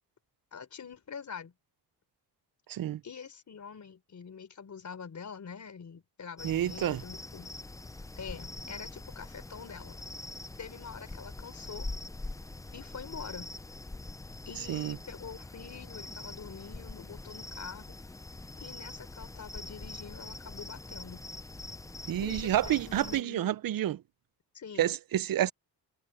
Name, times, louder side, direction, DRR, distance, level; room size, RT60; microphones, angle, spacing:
voice 1, 0.5-1.5 3.0-7.5 8.2-10.0 10.6-11.9 12.7-13.5 14.5-18.0 18.6-21.2 22.2-23.6 24.5-24.9, left 6 dB, 45° left, 4.0 m, -45 dB
voice 2, 2.7-3.0 6.4-7.0 14.7-15.0 22.1-24.0 24.8-25.5, right 12 dB, 55° right, 0.6 m, -29 dB
sound 1, 6.4-23.2, left 2 dB, 10° left, 0.4 m, -43 dB
wide cardioid pair, 140°, 40 cm